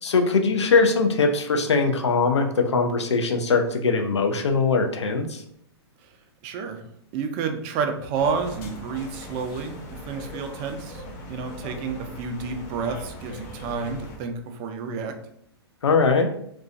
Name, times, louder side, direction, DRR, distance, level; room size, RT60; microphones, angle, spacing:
voice 1, 0.0-5.4 15.8-16.3, left 4 dB, 85° left, 5 dB, 0.4 m, -21 dB
voice 2, 6.4-6.8 7.1-15.2, right 5 dB, 35° right, 5 dB, 0.4 m, -30 dB
sound 1, 8.1-14.2, left 1 dB, 45° left, 0.7 m, -40 dB
2.3 x 2.2 x 2.5 m, 0.70 s
hypercardioid pair, 115°, 14 cm